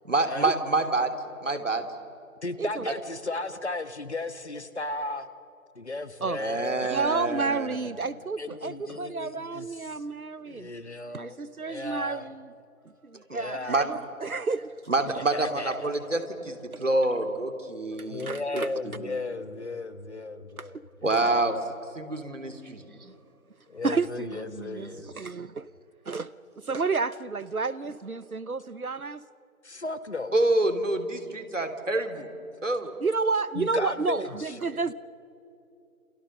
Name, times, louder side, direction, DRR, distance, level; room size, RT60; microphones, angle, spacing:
voice 1, 0.0-1.1 1.4-1.9 2.9-3.0 6.4-7.7 13.1-13.4 13.7-13.8 14.9-19.2 21.0-21.6 21.9-22.8 30.3-32.3 32.6-32.9, right 2 dB, 60° right, 7 dB, 3.3 m, -27 dB
voice 2, 2.4-5.3 5.8-7.0 8.4-10.0 10.5-11.4 11.6-12.3 13.3-13.9 15.1-15.7 18.1-20.8 23.7-25.1 29.6-30.3 33.6-34.5, left 3 dB, 50° left, 11 dB, 1.6 m, -35 dB
voice 3, 6.9-10.7 11.1-12.5 13.0-14.7 16.7-16.8 18.0-18.8 20.6-20.8 22.6-23.1 23.8-25.7 26.1-26.3 26.6-29.2 33.0-34.9, right 4 dB, 80° right, 17 dB, 0.9 m, -31 dB
29.0 x 27.5 x 6.6 m, 2.6 s
figure-of-eight pair, 160°, 42 cm